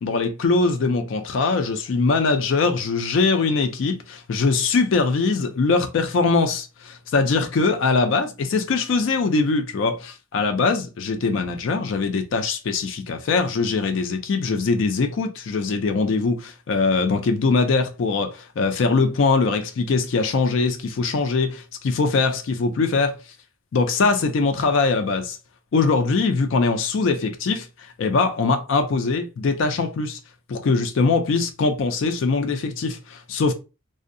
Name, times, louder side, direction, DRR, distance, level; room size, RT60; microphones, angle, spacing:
voice 1, 0.0-23.2 23.7-25.4 25.7-27.7 28.0-30.2 30.5-33.5, left 4 dB, 65° left, 0.4 m, -22 dB
2.6 x 2.0 x 2.5 m
head